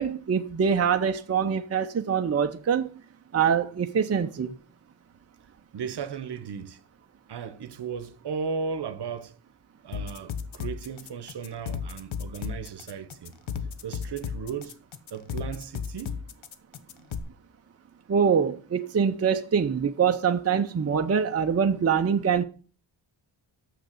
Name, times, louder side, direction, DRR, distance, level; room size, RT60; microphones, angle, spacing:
voice 1, 0.0-2.9 3.3-4.5 18.1-22.4, right 7 dB, 30° right, 0.7 m, -24 dB
voice 2, 5.7-6.8 7.3-9.4 9.8-13.3 13.8-14.8 15.1-16.2, right 6 dB, 60° right, 1.0 m, -35 dB
sound 1, 9.9-17.2, left 6 dB, 80° left, 1.0 m, -34 dB
6.7 x 6.5 x 7.5 m
cardioid pair, 90°, 46 cm